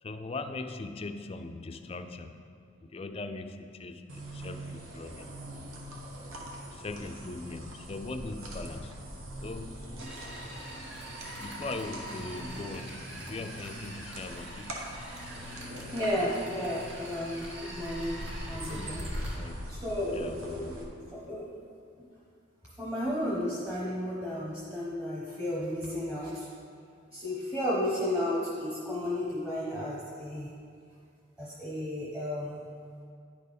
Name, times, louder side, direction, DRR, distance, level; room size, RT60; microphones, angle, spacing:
voice 1, 0.0-2.5 2.8-5.4 6.7-10.0 11.4-15.0 18.5-20.9, left 3 dB, 30° left, 7 dB, 0.3 m, -41 dB
sound 1, 4.1-20.8, equal, 85° right, 1.1 m, -42 dB
sound 2, 10.0-19.4, right 1 dB, 65° right, 1.9 m, -45 dB
voice 2, 15.9-19.1 19.7-21.5 22.8-26.5 27.1-30.5 31.4-32.7, left 1 dB, 10° right, -8 dB, 0.9 m, -33 dB
10.0 x 4.4 x 5.1 m, 2.3 s
head